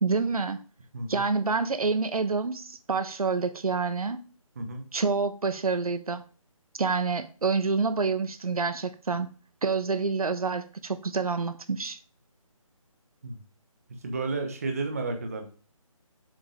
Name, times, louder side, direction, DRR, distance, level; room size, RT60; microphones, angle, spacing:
voice 1, 0.0-0.6 1.1-4.2 4.9-6.2 6.8-9.3 9.6-12.0, right 4 dB, 80° right, 1.1 m, -27 dB
voice 2, 14.0-15.4, right 3 dB, 25° right, 1.1 m, -32 dB
7.4 x 4.9 x 5.1 m
hypercardioid pair, 175°, 18 cm